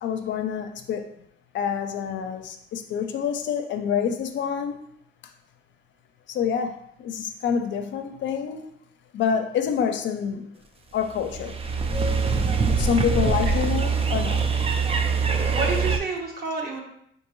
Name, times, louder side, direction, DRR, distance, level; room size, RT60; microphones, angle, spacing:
voice 1, 0.0-1.1 1.5-4.8 6.3-8.7 9.1-10.5 10.9-11.6 12.8-14.4, left 7 dB, 70° left, 7 dB, 0.5 m, -27 dB
sound 1, 11.0-16.0, right 5 dB, 30° right, 0.4 m, -23 dB
voice 2, 15.3-16.8, right 3 dB, 50° right, 0 dB, 1.1 m, -29 dB
4.5 x 2.7 x 3.0 m, 0.72 s
cardioid pair, 90°, 20 cm